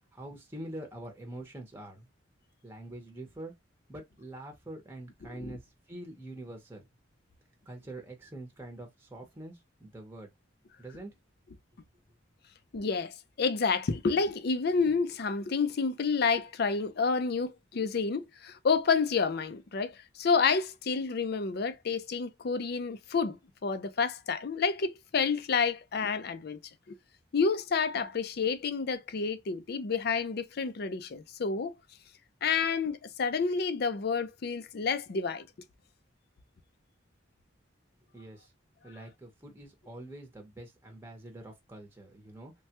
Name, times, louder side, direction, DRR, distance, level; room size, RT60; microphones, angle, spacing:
voice 1, 0.1-2.1 2.6-3.5 3.9-6.8 7.7-10.3 10.8-11.1 38.1-38.5 38.8-42.5, right 1 dB, 10° right, 0.8 m, -45 dB
voice 2, 12.7-23.4 23.6-26.6 26.9-27.0 27.3-31.7 32.4-35.5, left 5 dB, 55° left, 0.5 m, -29 dB
3.2 x 2.2 x 2.8 m
head